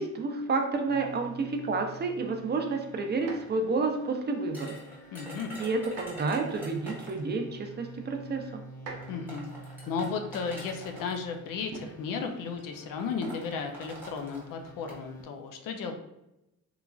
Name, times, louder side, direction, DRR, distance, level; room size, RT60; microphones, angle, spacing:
voice 1, 0.0-4.8 5.6-8.6, right 3 dB, 35° right, 4 dB, 0.4 m, -30 dB
sound 1, 0.9-15.2, right 2 dB, 65° left, 0.9 m, -50 dB
sound 2, 3.1-3.7 5.8-6.4 7.4-7.5 8.7-9.4 11.7-12.1 13.3-13.7, right 4 dB, 75° right, 0.6 m, -45 dB
sound 3, 4.5-7.3 8.4-8.5 9.0-11.2 12.1-12.3 12.6-12.7 13.0-15.0, right 1 dB, 5° right, 0.9 m, -46 dB
voice 2, 5.1-5.5 9.1-9.5 9.9-15.9, left 5 dB, 85° left, 5 dB, 0.5 m, -34 dB
3.0 x 2.4 x 2.3 m, 0.90 s
cardioid pair, 105°, 32 cm